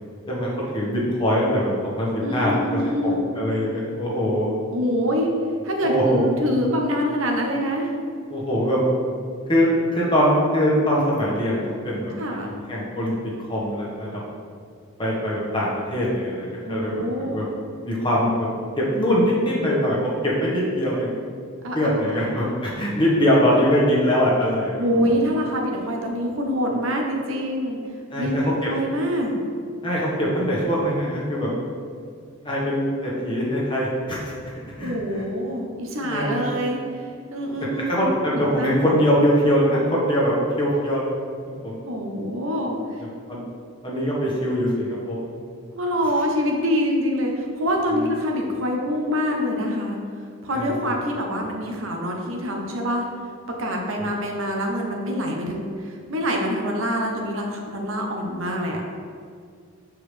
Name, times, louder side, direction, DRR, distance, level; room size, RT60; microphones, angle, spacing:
voice 1, 0.3-4.5 5.8-6.2 8.3-8.8 9.5-12.4 12.7-13.1 13.5-14.2 15.0-17.4 17.8-18.5 18.8-21.2 21.7-24.8 28.1-28.7 29.8-31.5 32.4-34.2 34.8-34.9 36.0-36.4 37.9-41.1 41.6-41.7 43.3-43.4 43.8-45.3 50.5-50.7, equal, 25° left, -5 dB, 1.3 m, -22 dB
voice 2, 2.2-3.3 4.7-5.3 5.6-7.9 12.2-12.5 16.6-17.5 21.6-22.4 24.8-27.8 28.2-29.3 34.8-37.0 37.3-38.9 41.9-43.0 45.7-50.0 50.4-53.1 53.6-58.8, equal, 65° right, 1 dB, 0.9 m, -25 dB
7.1 x 4.8 x 3.3 m, 2.2 s
head